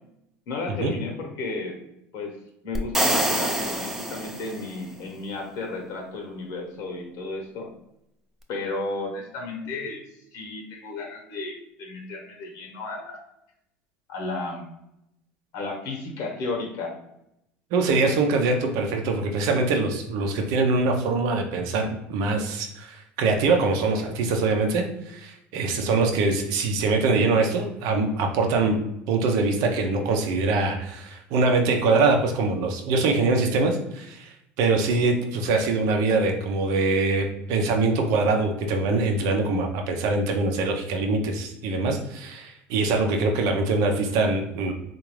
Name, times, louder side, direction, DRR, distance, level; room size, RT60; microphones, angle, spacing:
voice 1, 0.5-1.8 2.1-2.3 2.6-7.7 8.5-10.0 10.3-13.2 14.1-14.7 15.5-16.9, left 3 dB, 65° left, 1 dB, 1.1 m, -33 dB
sound 1, 2.8-4.8, right 1 dB, 5° right, 0.5 m, -26 dB
voice 2, 17.7-28.8 29.1-44.7, right 3 dB, 70° right, 3 dB, 0.7 m, -23 dB
3.7 x 2.6 x 3.1 m, 0.81 s
hypercardioid pair, 85°, 6 cm